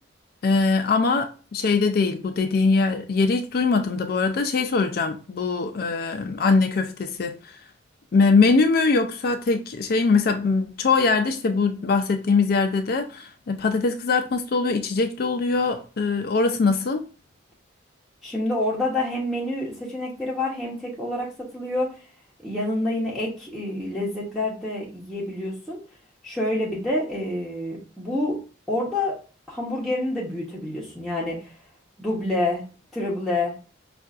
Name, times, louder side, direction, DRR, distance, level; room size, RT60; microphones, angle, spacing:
voice 1, 0.4-7.6 8.1-17.0, left 4 dB, 50° left, 0.4 m, -22 dB
voice 2, 18.2-21.9 22.4-25.8 26.2-28.4 28.7-29.2 29.5-31.5 32.0-32.6 32.9-33.5, left 1 dB, ahead, 0.9 m, -27 dB
5.4 x 2.5 x 2.4 m
head